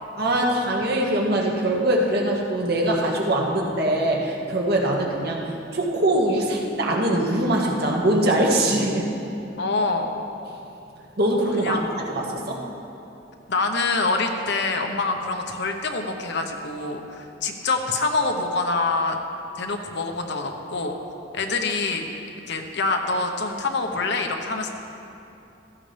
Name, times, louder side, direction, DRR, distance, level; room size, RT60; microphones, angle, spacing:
voice 1, 0.2-9.1 11.2-12.6, right 1 dB, 60° right, -1 dB, 1.8 m, -22 dB
voice 2, 9.6-10.1 11.6-11.9 13.5-19.2 19.6-20.9 21.3-22.0 22.5-24.7, left 3 dB, 65° left, 4 dB, 1.1 m, -25 dB
15.5 x 14.0 x 3.5 m, 2.8 s
head